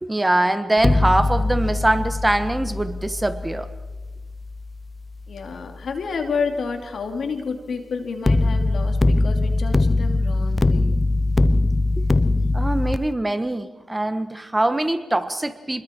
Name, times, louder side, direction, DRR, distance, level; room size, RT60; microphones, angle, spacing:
voice 1, 0.0-3.7 12.0-12.1 12.5-15.8, right 1 dB, 15° right, 11 dB, 1.3 m, -23 dB
sound 1, 0.8-5.9 8.3-13.0, left 2 dB, 30° left, 0.7 m, -22 dB
voice 2, 5.3-11.0, left 5 dB, 75° left, 5 dB, 2.8 m, -30 dB
28.5 x 21.5 x 4.6 m, 1.2 s
cardioid pair, 65°, 0 cm